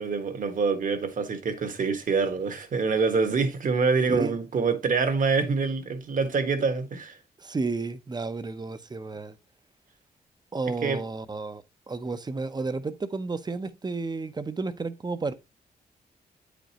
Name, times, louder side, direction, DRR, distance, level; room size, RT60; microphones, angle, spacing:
voice 1, 0.0-7.2 10.8-11.0, right 4 dB, 55° right, 1.4 m, -26 dB
voice 2, 7.4-9.3 10.5-15.3, right 3 dB, 25° right, 0.7 m, -32 dB
9.0 x 5.1 x 2.9 m
cardioid pair, 95°, 16 cm